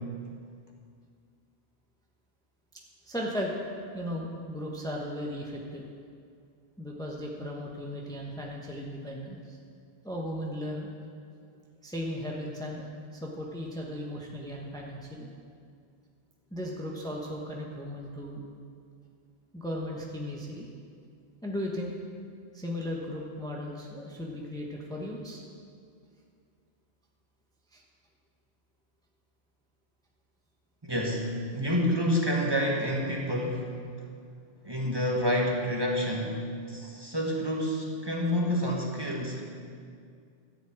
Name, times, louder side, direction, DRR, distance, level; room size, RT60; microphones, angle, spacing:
voice 1, 3.1-3.7 3.9-5.8 6.8-9.6 10.0-10.9 11.8-12.8 13.1-15.3 16.5-18.4 19.5-20.7 21.4-21.9 22.5-25.4 27.7-27.8, equal, 5° left, -2 dB, 1.1 m, -36 dB
voice 2, 30.8-33.7 34.6-39.4, equal, 25° right, -2 dB, 1.4 m, -28 dB
13.0 x 5.2 x 8.7 m, 2.2 s
omnidirectional pair, 1.1 m